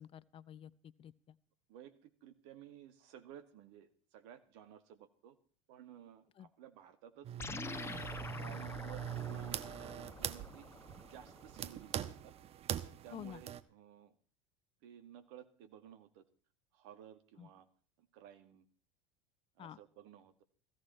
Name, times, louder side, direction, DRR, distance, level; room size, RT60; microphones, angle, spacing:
voice 1, 0.0-1.4 6.4-6.5 13.1-13.4 17.4-17.5 19.6-19.8, left 10 dB, 35° left, 18 dB, 0.7 m, -50 dB
voice 2, 1.7-5.4 5.7-7.8 8.1-10.7 11.0-12.3 12.8-14.2 14.8-16.2 16.7-17.7 18.0-18.6 19.6-20.4, right 10 dB, 60° right, 11 dB, 2.0 m, -56 dB
sound 1, 7.2-13.6, right 10 dB, 40° right, 1.1 m, -43 dB
sound 2, 7.4-12.1, left 4 dB, 15° left, 1.1 m, -47 dB
16.5 x 14.0 x 4.4 m, 0.43 s
hypercardioid pair, 85°, 16 cm